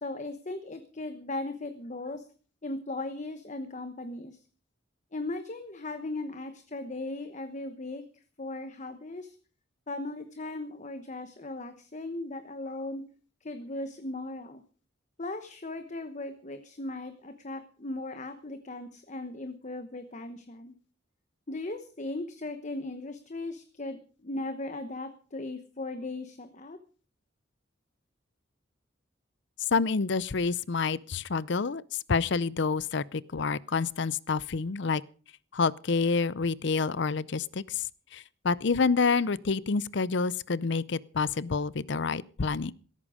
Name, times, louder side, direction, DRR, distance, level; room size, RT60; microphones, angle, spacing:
voice 1, 0.0-2.3 2.6-4.4 5.1-8.0 8.4-9.4 9.9-13.0 13.4-14.6 15.2-20.7 21.5-26.8, left 2 dB, 40° left, 1.1 m, -37 dB
voice 2, 29.7-31.8 32.1-35.0 35.5-37.8 38.1-42.7, left 4 dB, 65° left, 0.6 m, -28 dB
16.0 x 14.0 x 5.0 m
head